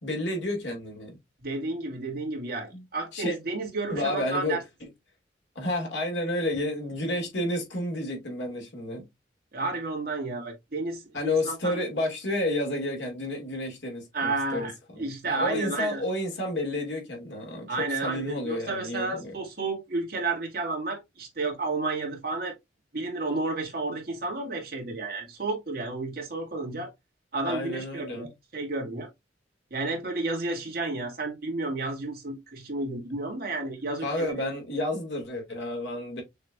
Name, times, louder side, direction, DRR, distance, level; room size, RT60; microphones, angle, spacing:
voice 1, 0.0-1.2 2.7-2.8 3.1-3.4 3.9-4.6 5.6-9.1 11.1-14.7 14.9-19.4 27.4-28.3 34.0-36.2, left 1 dB, 85° left, 2.2 m, -30 dB
voice 2, 1.4-4.6 9.5-11.8 14.1-14.7 15.0-16.0 17.7-22.5 22.9-26.9 27.3-29.1 29.7-34.4, right 3 dB, 60° right, 2.0 m, -31 dB
6.3 x 3.1 x 2.4 m
head